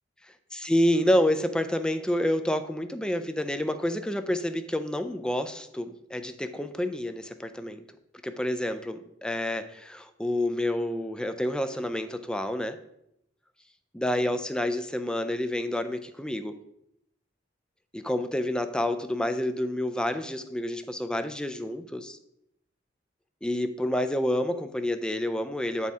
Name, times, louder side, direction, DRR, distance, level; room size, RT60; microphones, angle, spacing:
voice 1, 0.5-7.8 8.2-12.8 13.9-16.5 17.9-22.2 23.4-25.9, left 1 dB, 5° left, 9 dB, 0.4 m, -28 dB
9.2 x 4.2 x 3.5 m, 0.79 s
head